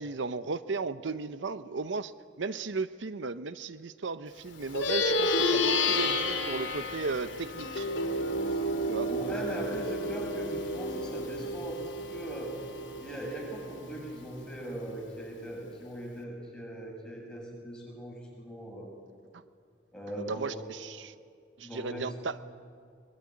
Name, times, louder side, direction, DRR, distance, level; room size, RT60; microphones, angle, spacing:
voice 1, 0.0-2.1 2.4-7.9 8.9-9.1 19.3-19.4 20.2-21.1 21.6-22.4, right 4 dB, 85° right, 13 dB, 0.7 m, -35 dB
Plucked string instrument, 4.6-14.3, left 2 dB, 80° left, 2.7 m, -31 dB
voice 2, 9.0-11.8 12.1-12.5 13.0-18.9 19.9-20.6 21.6-22.1, right 1 dB, 5° left, -3 dB, 7.8 m, -40 dB
23.0 x 22.0 x 10.0 m, 2.2 s
head